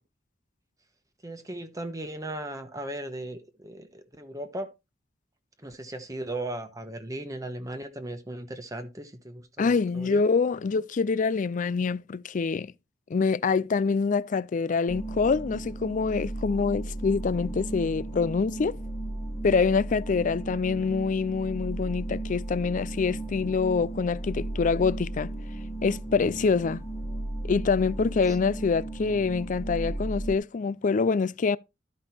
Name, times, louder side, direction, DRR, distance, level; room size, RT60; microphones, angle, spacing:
voice 1, 1.2-4.7 5.6-10.2 28.3-28.4, right 1 dB, 20° right, 1.2 m, -37 dB
voice 2, 9.6-12.7 13.1-18.8 19.4-25.3 25.8-26.8 27.5-31.6, left 4 dB, 45° left, 0.4 m, -25 dB
sound 1, 14.9-30.4, right 1 dB, 20° left, 1.6 m, -35 dB
12.5 x 5.4 x 4.3 m
head